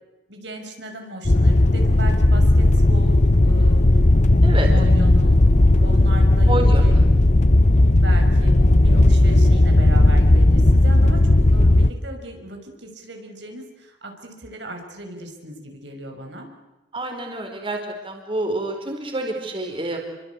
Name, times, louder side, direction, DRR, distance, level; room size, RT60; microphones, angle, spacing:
voice 1, 0.3-3.8 4.7-5.4 5.8-7.0 7.9-16.5, right 1 dB, 75° right, 3 dB, 6.0 m, -36 dB
sound 1, 1.3-11.9, left 1 dB, 40° left, 0.9 m, -15 dB
voice 2, 6.5-7.1 16.9-17.8 18.0-20.0, right 2 dB, 30° right, 3 dB, 4.6 m, -28 dB
29.5 x 24.5 x 8.4 m, 1.1 s
head